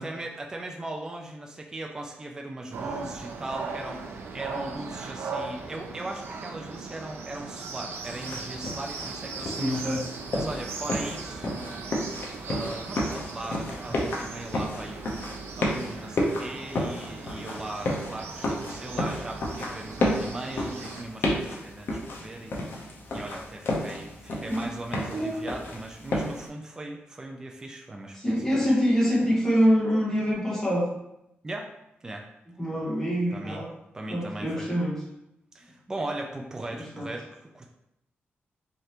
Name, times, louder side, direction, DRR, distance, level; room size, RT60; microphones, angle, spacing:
voice 1, 0.0-10.0 10.3-11.9 12.4-15.1 15.5-28.4 31.4-31.7 32.0-32.3 33.3-33.6 33.9-34.7 35.5-37.7, right 2 dB, 15° right, 1 dB, 0.3 m, -38 dB
sound 1, 2.7-21.0, right 4 dB, 85° right, 0.5 m, -38 dB
sound 2, 8.1-26.5, left 1 dB, 60° left, 0.7 m, -32 dB
voice 2, 9.4-10.1 24.5-24.7 25.1-25.4 28.1-30.9 32.6-33.7 34.1-35.0 36.7-37.1, equal, 5° left, -6 dB, 1.1 m, -25 dB
3.7 x 3.3 x 2.8 m, 0.85 s
wide cardioid pair, 175°, 4 cm